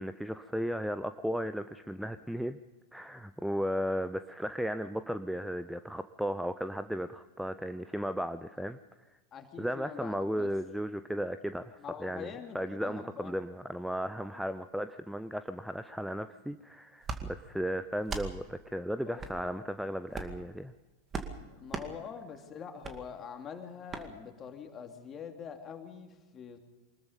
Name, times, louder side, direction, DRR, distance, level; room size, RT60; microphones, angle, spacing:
voice 1, 0.0-2.6 2.9-8.8 9.6-20.7, equal, ahead, 11 dB, 0.6 m, -35 dB
voice 2, 9.3-10.5 11.8-13.4 14.3-14.4 19.1-19.6 21.5-26.6, left 7 dB, 25° left, 4 dB, 2.8 m, -44 dB
sound 1, 17.0-17.2 18.0-18.3 19.2-19.4 20.1-20.4 21.1-21.3 21.7-21.9 22.8-23.0 23.9-24.1, right 4 dB, 20° right, 2.2 m, -37 dB
25.0 x 20.5 x 5.3 m, 1.2 s
figure-of-eight pair, 90°, 0 cm